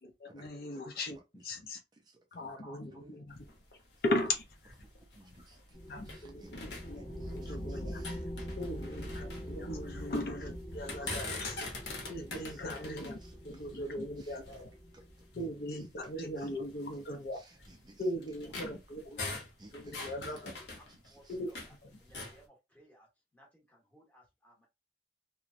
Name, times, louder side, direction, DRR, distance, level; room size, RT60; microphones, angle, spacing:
voice 1, 0.0-1.2 1.4-1.8 2.3-3.4 4.0-4.7 5.9-7.1 7.3-8.0 8.6-11.7 12.1-14.7 15.4-17.4 18.0-19.4 19.7-20.5 21.3-21.5, left 1 dB, 55° left, 0.6 m, -38 dB
voice 2, 1.3-3.2 4.8-8.5 9.6-9.8 11.0-11.1 12.1-12.7 13.1-14.7 14.9-15.3 15.7-16.6 17.3-18.0 18.5-19.2 19.6-20.6 20.9-21.4, right 2 dB, 25° right, 0.4 m, -60 dB
sound 1, 3.3-6.2 6.5-7.6 7.9-10.3 10.7-14.7 15.3-15.4 15.9-16.1 16.8-21.8 22.0-22.4, left 3 dB, 80° left, 0.8 m, -44 dB
sound 2, 5.7-15.7, equal, 40° left, 0.9 m, -44 dB
voice 3, 20.5-24.7, equal, 10° left, 1.0 m, -62 dB
2.9 x 2.1 x 2.5 m
head